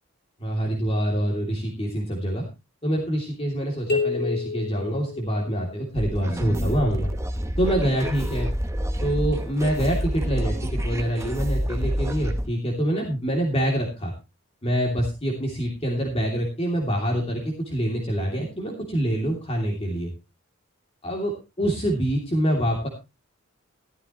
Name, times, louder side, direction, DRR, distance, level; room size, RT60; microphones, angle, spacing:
voice 1, 0.4-2.5 2.8-7.1 7.6-8.5 9.0-14.1 14.6-20.1 21.0-22.9, equal, 25° left, -1 dB, 2.9 m, -25 dB
sound 1, 3.9-5.8, left 4 dB, 50° left, 3.3 m, -29 dB
sound 2, 6.0-12.5, equal, 15° right, 0.9 m, -28 dB
14.0 x 13.5 x 3.1 m, 0.28 s
head